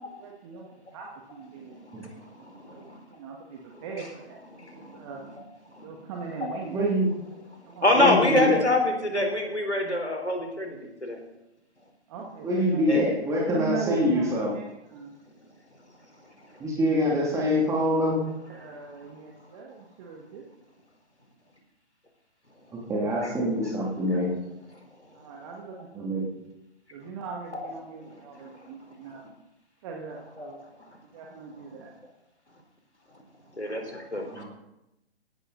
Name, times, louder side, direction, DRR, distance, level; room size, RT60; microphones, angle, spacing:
voice 1, 0.0-5.2 5.8-6.8 7.7-8.5 12.1-13.0 13.4-15.1 18.5-20.5 25.1-26.2 26.9-29.2 29.8-30.6 31.0-31.9, right 5 dB, 30° right, 0 dB, 1.9 m, -40 dB
voice 2, 1.9-3.0 4.5-5.1 5.7-5.8 7.8-11.2 12.9-13.0 27.5-27.7 30.4-30.5 33.6-34.5, left 1 dB, 85° left, 3 dB, 4.1 m, -26 dB
voice 3, 6.7-7.1 8.0-8.6 12.4-14.5 16.6-18.2 22.7-24.3 25.9-26.2 34.3-34.5, left 1 dB, 10° right, -2 dB, 2.7 m, -25 dB
17.5 x 13.0 x 4.1 m, 0.91 s
figure-of-eight pair, 130°, 33 cm